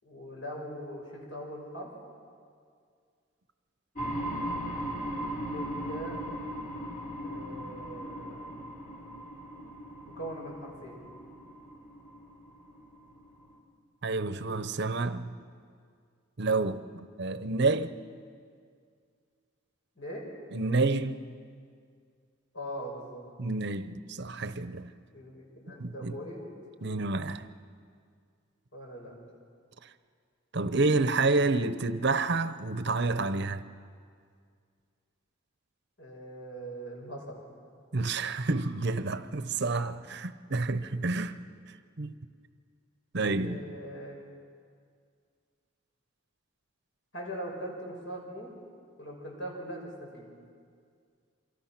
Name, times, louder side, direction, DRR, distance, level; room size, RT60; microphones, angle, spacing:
voice 1, 0.0-1.9 5.5-6.2 7.2-8.5 10.0-11.0 20.0-20.3 22.5-23.3 25.1-26.4 28.7-29.2 36.0-37.5 40.7-40.8 43.2-44.2 47.1-48.5 49.0-50.3, equal, 65° left, 6.1 m, -41 dB
sound 1, 4.0-13.5, equal, 40° left, 3.7 m, -38 dB
voice 2, 14.0-15.3 16.4-17.9 20.5-21.2 23.4-24.9 25.8-26.2 26.8-27.5 30.5-33.6 37.9-41.4 41.7-42.1 43.1-43.6, right 3 dB, 55° right, 0.9 m, -29 dB
26.5 x 25.0 x 6.0 m
head